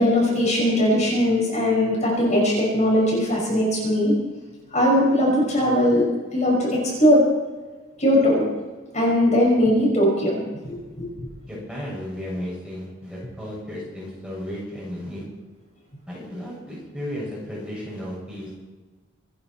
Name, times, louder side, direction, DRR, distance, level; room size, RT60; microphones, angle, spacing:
voice 1, 0.0-4.1 4.7-7.2 8.0-8.4 8.9-11.3, left 1 dB, 35° left, -3 dB, 5.9 m, -20 dB
voice 2, 11.5-15.2 16.1-18.6, equal, 5° right, -6 dB, 7.2 m, -34 dB
26.5 x 11.0 x 4.5 m, 1.3 s
head